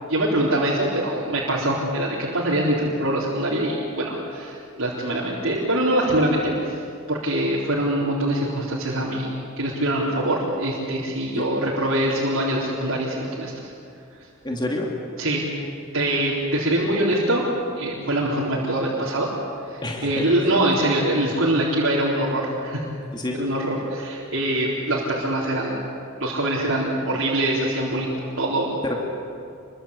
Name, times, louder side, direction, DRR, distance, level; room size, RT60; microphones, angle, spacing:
voice 1, 0.1-6.8 7.1-13.5 15.2-15.6 15.9-17.5 17.8-19.3 19.7-22.8 23.3-25.8 26.2-28.1 28.4-28.7, right 1 dB, 85° right, -6 dB, 4.1 m, -23 dB
voice 2, 14.4-14.9 19.8-20.3 23.1-23.4 28.8-29.0, left 1 dB, 20° left, 0 dB, 2.7 m, -27 dB
28.0 x 23.5 x 8.5 m, 2.5 s
head